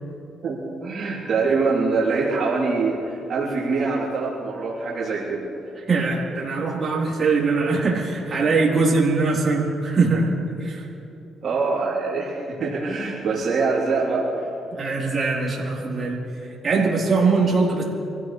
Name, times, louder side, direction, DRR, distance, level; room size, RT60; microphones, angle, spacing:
voice 1, 0.4-5.4 11.4-14.5, right 4 dB, 55° right, -7 dB, 3.7 m, -24 dB
voice 2, 5.9-10.3 10.6-10.9 14.7-17.8, right 4 dB, 40° right, -4 dB, 4.3 m, -22 dB
26.0 x 16.0 x 3.5 m, 2.8 s
cardioid pair, 90°, 0 cm